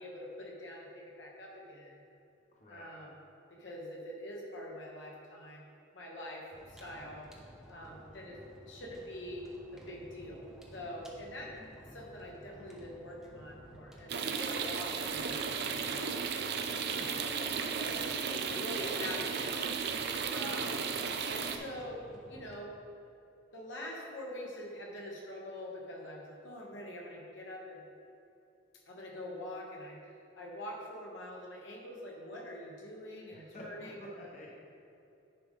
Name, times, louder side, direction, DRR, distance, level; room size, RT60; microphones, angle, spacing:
voice 1, 0.0-2.0 2.7-3.2 3.5-5.7 5.9-7.3 7.7-8.4 8.7-11.5 11.9-16.1 16.8-17.3 17.7-19.6 20.3-20.7 21.3-22.8 23.5-27.8 28.9-30.0 30.3-34.0, left 1 dB, 65° left, -2 dB, 1.2 m, -44 dB
voice 2, 2.5-2.9 11.4-11.7 17.2-17.8 20.4-20.6 33.3-34.5, left 1 dB, 35° left, -4 dB, 1.1 m, -50 dB
sound 1, 6.5-22.6, equal, ahead, 0.8 m, -54 dB
sound 2, 14.1-21.6, right 6 dB, 55° right, 0.5 m, -34 dB
10.0 x 5.1 x 3.7 m, 2.8 s
head